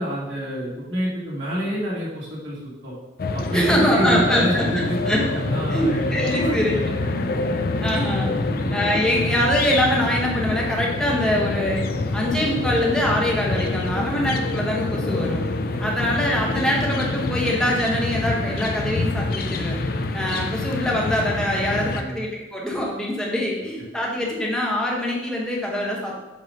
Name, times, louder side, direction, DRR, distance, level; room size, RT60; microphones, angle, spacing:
voice 1, 0.0-2.9 3.3-7.5 8.3-8.8 14.0-14.1 15.7-15.8 19.9-20.3 21.8-22.2, equal, 70° right, -6 dB, 2.4 m, -28 dB
sound 1, 3.2-22.0, left 2 dB, 50° left, 0.4 m, -26 dB
voice 2, 3.5-5.2 5.7-6.8 7.8-8.3 8.7-11.8 12.1-15.4 15.8-19.8 20.1-26.1, equal, 5° left, -3 dB, 1.1 m, -23 dB
7.6 x 3.0 x 5.3 m, 1.1 s
head